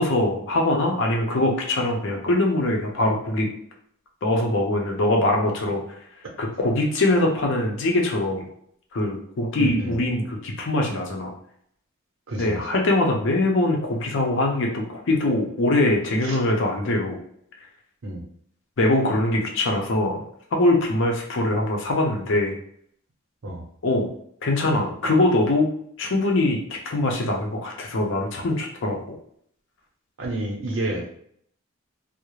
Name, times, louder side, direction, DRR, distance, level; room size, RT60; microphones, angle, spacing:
voice 1, 0.0-3.5 4.2-5.8 6.4-8.5 8.9-11.3 12.4-17.2 18.8-20.3 20.5-22.5 23.8-24.1 24.4-29.2, left 2 dB, 65° left, 1 dB, 0.6 m, -22 dB
voice 2, 9.6-10.0 12.3-12.6 16.2-16.4 18.0-18.2 23.4-23.6 30.2-31.2, right 1 dB, 75° right, -1 dB, 0.7 m, -29 dB
2.4 x 2.0 x 3.0 m, 0.66 s
head